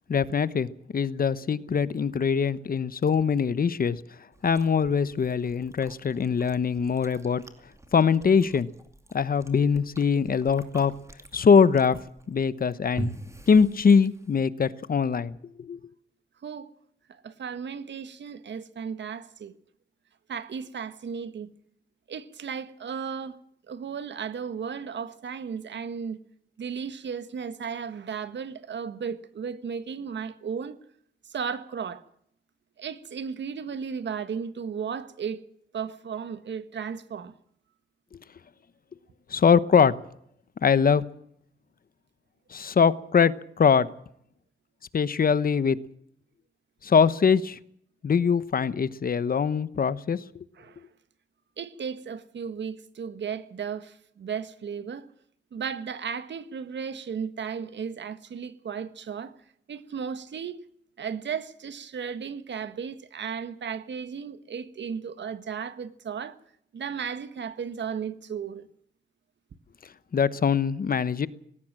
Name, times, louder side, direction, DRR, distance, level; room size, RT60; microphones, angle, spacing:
voice 1, 0.1-4.0 4.4-7.4 7.9-8.7 9.1-10.9 11.3-12.0 12.3-13.1 13.5-15.3 15.6-15.8 39.3-39.9 40.6-41.1 42.5-43.9 44.9-45.8 46.8-47.6 48.0-50.2 70.1-71.3, left 6 dB, 50° left, 1.0 m, -22 dB
Chewing mastication, 4.3-14.5, right 2 dB, 15° right, 2.5 m, -44 dB
voice 2, 17.1-19.5 20.3-21.5 22.1-23.4 23.7-26.2 26.6-30.8 31.3-32.0 32.8-35.4 35.7-37.3 50.6-50.8 51.6-55.1 55.5-59.3 59.7-60.6 61.0-66.4 66.7-68.7, right 6 dB, 70° right, 1.6 m, -35 dB
19.5 x 17.5 x 7.6 m
wide cardioid pair, 115°, 19 cm